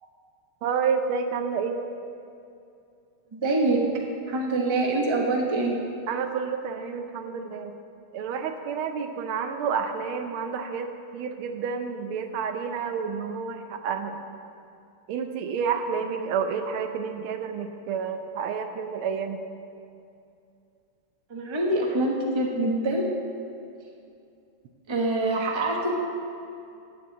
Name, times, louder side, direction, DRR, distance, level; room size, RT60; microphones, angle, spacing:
voice 1, 0.6-1.8 6.1-7.7 8.1-14.2 15.1-19.4, right 6 dB, 80° right, 7 dB, 1.6 m, -29 dB
voice 2, 3.3-3.8 4.3-5.7 21.3-23.1 24.9-25.9, right 2 dB, 20° right, -1 dB, 0.8 m, -25 dB
12.5 x 4.7 x 8.4 m, 2.5 s
omnidirectional pair, 2.3 m